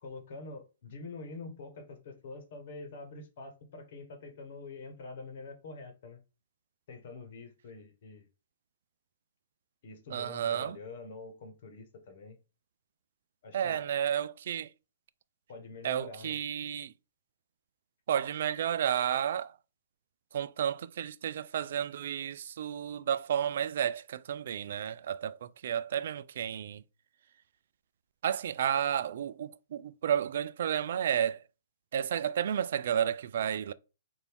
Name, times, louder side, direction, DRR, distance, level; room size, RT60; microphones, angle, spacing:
voice 1, 0.0-6.2 6.9-8.3 9.8-12.4 13.4-13.8 15.5-16.4, left 3 dB, 45° left, 1.1 m, -46 dB
voice 2, 10.1-10.8 13.5-14.7 15.8-16.9 18.1-19.6 20.3-26.8 28.2-31.4 31.9-33.7, right 9 dB, 55° right, 0.3 m, -32 dB
4.4 x 2.6 x 3.5 m
hypercardioid pair, 165°, 0 cm